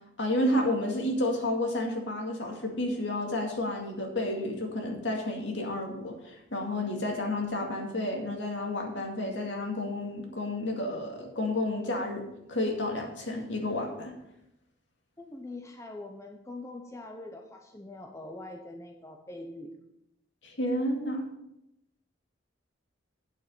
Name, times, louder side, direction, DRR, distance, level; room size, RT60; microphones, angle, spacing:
voice 1, 0.2-12.2 12.5-14.1 20.4-21.3, left 1 dB, 70° left, 1 dB, 2.2 m, -31 dB
voice 2, 15.2-19.8, left 2 dB, 15° left, 3 dB, 0.7 m, -43 dB
9.1 x 7.2 x 5.6 m, 0.85 s
head